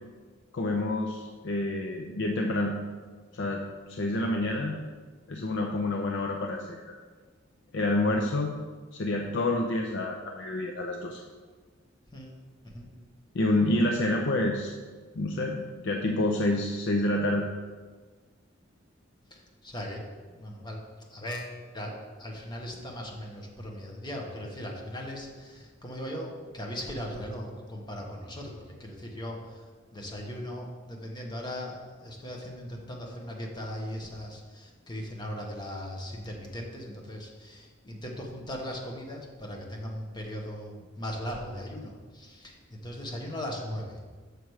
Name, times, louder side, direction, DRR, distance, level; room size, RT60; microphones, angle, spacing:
voice 1, 0.5-2.7 3.3-3.6 3.9-4.8 5.3-6.8 7.7-8.5 8.9-11.2 13.3-14.7 15.1-17.5, left 1 dB, 65° left, 1 dB, 0.6 m, -28 dB
voice 2, 19.3-20.8 21.1-29.6 29.9-44.0, equal, 20° left, 0 dB, 1.1 m, -38 dB
6.8 x 6.1 x 4.7 m, 1.4 s
head